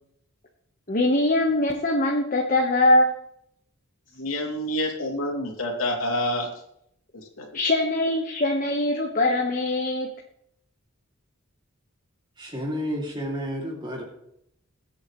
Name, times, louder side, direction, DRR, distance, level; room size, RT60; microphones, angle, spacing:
voice 1, 0.9-3.1 7.5-10.1, left 1 dB, 40° left, 0 dB, 1.4 m, -22 dB
voice 2, 4.2-6.6 7.1-7.7, left 1 dB, 80° left, 0 dB, 3.0 m, -28 dB
voice 3, 12.4-14.0, equal, 20° right, 0 dB, 2.6 m, -31 dB
22.5 x 8.3 x 3.2 m, 0.72 s
head